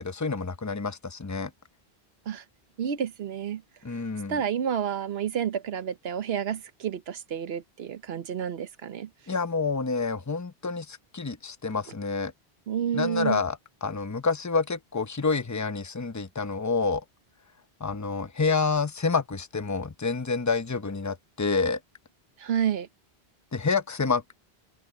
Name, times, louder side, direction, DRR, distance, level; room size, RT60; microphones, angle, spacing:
voice 1, 0.0-1.5 3.8-4.4 9.3-12.3 12.9-17.0 17.8-21.8 23.5-24.2, left 4 dB, 20° left, 0.7 m, -28 dB
voice 2, 2.8-3.6 4.3-9.1 12.7-13.4 22.4-22.9, right 8 dB, 80° right, 1.1 m, -30 dB
open air
omnidirectional pair, 1.0 m